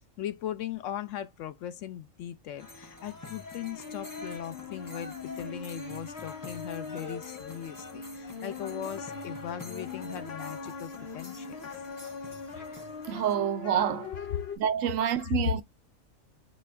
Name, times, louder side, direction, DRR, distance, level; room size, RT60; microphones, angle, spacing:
voice 1, 0.0-11.6 13.4-13.5 15.2-15.4, left 11 dB, 75° left, 0.9 m, -39 dB
sound 1, 2.6-13.4, left 2 dB, 25° left, 0.5 m, -47 dB
sound 2, 3.7-14.6, left 4 dB, 55° left, 1.1 m, -41 dB
voice 2, 13.1-14.1 14.6-15.6, right 9 dB, 80° right, 1.0 m, -27 dB
5.3 x 2.4 x 3.3 m
omnidirectional pair, 1.4 m